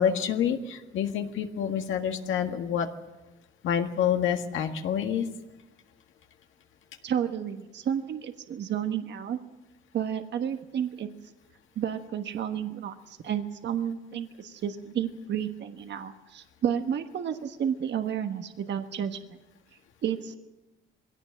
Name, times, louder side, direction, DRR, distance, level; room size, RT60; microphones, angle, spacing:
voice 1, 0.0-2.9 3.6-5.3, left 8 dB, 80° left, 5 dB, 1.7 m, -27 dB
voice 2, 7.0-9.4 9.9-11.1 11.8-19.4 20.0-20.3, right 9 dB, 65° right, 7 dB, 1.4 m, -31 dB
21.5 x 17.0 x 7.5 m, 1.1 s
cardioid pair, 90°, 20 cm